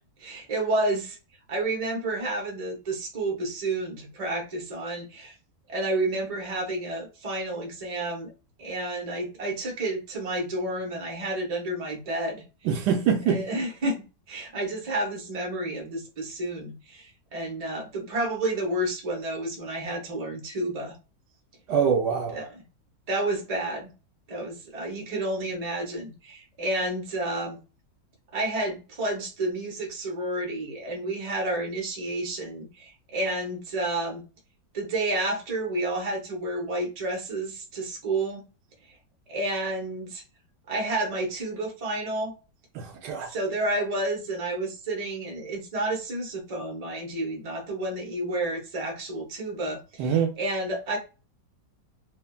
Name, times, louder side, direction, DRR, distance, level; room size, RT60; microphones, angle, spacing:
voice 1, 0.2-1.2 1.5-5.3 5.7-8.3 8.6-12.4 13.3-21.0 22.3-22.4 23.1-23.9 24.3-27.6 28.3-34.3 34.7-38.4 39.3-40.2 40.7-42.3 43.3-51.0, right 2 dB, 40° right, 0.5 m, -30 dB
voice 2, 12.6-13.4 21.7-22.5 42.7-43.3 50.0-50.3, right 7 dB, 75° right, 1.2 m, -24 dB
3.3 x 2.1 x 2.2 m
omnidirectional pair, 1.9 m